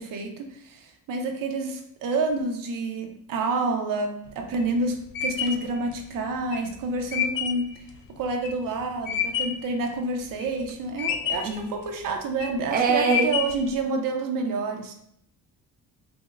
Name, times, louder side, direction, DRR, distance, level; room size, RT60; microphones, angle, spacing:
voice 1, 0.0-7.7 8.2-14.9, right 3 dB, 70° right, 4 dB, 0.6 m, -28 dB
sound 1, 4.3-9.7 10.1-10.7 11.0-11.6 12.2-12.6 13.0-13.7, left 8 dB, 70° left, 0.5 m, -29 dB
voice 2, 12.7-13.3, right 4 dB, 25° right, 2 dB, 0.4 m, -23 dB
6.1 x 2.0 x 2.3 m, 0.70 s
cardioid pair, 160°, 35 cm